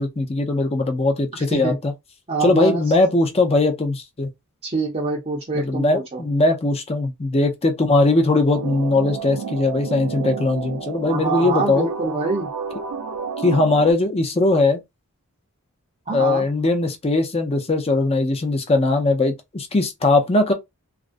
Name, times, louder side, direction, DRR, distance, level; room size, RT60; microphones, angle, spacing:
voice 1, 0.0-1.9 2.4-4.3 5.5-11.9 13.4-14.8 16.1-20.5, left 2 dB, 25° left, 0.5 m, -20 dB
voice 2, 2.3-2.8 4.6-6.2 11.1-12.5 16.1-16.4, right 3 dB, 30° right, 0.6 m, -25 dB
sound 1, 8.5-13.9, right 5 dB, 75° right, 0.5 m, -30 dB
2.4 x 2.0 x 2.5 m
head